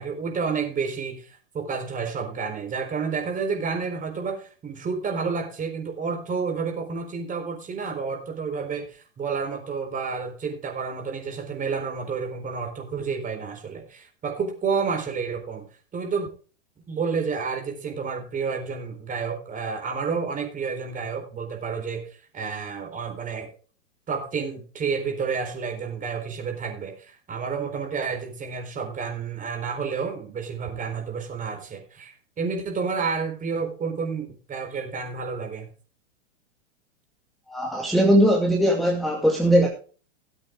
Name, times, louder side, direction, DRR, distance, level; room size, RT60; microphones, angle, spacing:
voice 1, 0.0-15.6 15.9-16.3 16.9-22.0 22.3-23.5 24.1-35.7, right 5 dB, 20° right, 4.1 m, -30 dB
voice 2, 37.5-39.7, equal, ahead, 2.2 m, -20 dB
18.0 x 8.1 x 3.8 m
hypercardioid pair, 125°, 38 cm